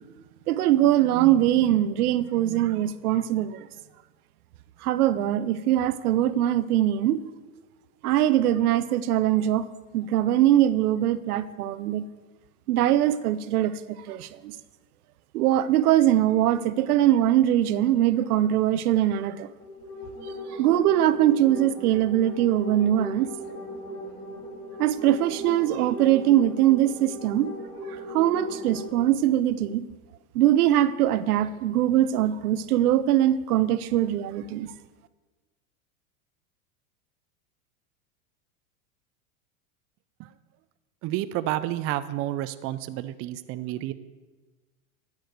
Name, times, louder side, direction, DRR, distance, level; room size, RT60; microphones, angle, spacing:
voice 1, 0.5-3.7 4.8-7.2 8.0-9.7 9.9-12.1 12.7-14.5 15.3-19.5 20.5-23.3 24.8-27.5 28.1-29.9 30.3-34.7, right 12 dB, 80° right, 15 dB, 0.7 m, -22 dB
sound 1, 19.5-28.9, equal, 75° left, 3.0 m, -38 dB
voice 2, 41.0-43.9, right 14 dB, 35° right, 12 dB, 0.4 m, -30 dB
10.5 x 4.8 x 7.9 m, 1.3 s
hypercardioid pair, 105°, 44 cm